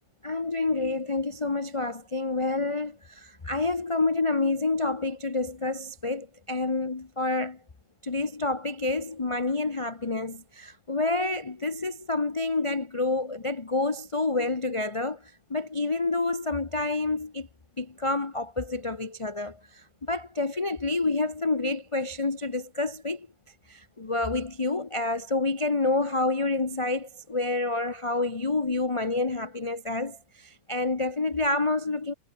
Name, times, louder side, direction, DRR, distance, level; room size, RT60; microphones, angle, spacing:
voice 1, 0.2-7.6 8.0-15.2 15.5-17.5 17.8-19.6 20.1-23.3 23.7-30.2 30.4-32.1, left 2 dB, 25° left, 0.7 m, -28 dB
omnidirectional pair, 2.1 m